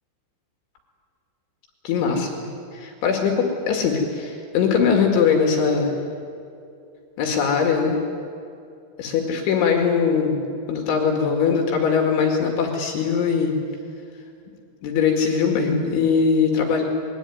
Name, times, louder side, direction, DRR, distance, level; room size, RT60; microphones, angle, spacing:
voice 1, 1.8-2.3 2.7-5.9 7.2-8.0 9.0-10.4 10.7-13.6 14.8-16.8, left 6 dB, 70° left, 2 dB, 4.5 m, -21 dB
25.0 x 21.5 x 9.5 m, 2.6 s
omnidirectional pair, 5.8 m